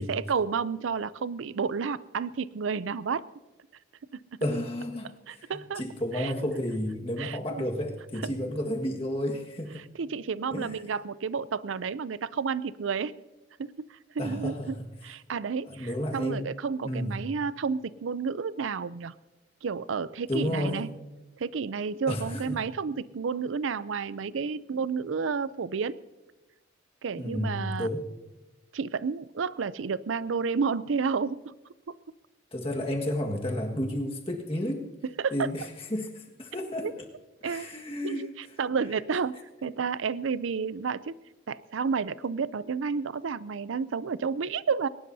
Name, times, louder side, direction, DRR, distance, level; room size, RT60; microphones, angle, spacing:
voice 1, 0.0-3.2 5.3-5.8 6.1-6.3 7.2-7.6 10.0-13.1 13.6-14.8 15.0-19.1 19.6-20.9 21.4-26.0 27.0-27.9 28.7-31.5 31.9-32.0 35.2-35.5 36.8-36.9 37.4-37.7 38.0-39.3 39.6-41.1 41.5-44.9, right 5 dB, 90° right, 17 dB, 0.5 m, -31 dB
voice 2, 4.4-9.8 10.5-10.8 14.2-14.9 15.7-16.5 16.8-17.1 20.3-20.8 22.1-22.6 27.2-28.0 32.5-34.8 35.3-37.0 37.4-38.3, left 1 dB, 30° left, 1 dB, 1.6 m, -32 dB
21.0 x 18.5 x 2.7 m, 1.1 s
head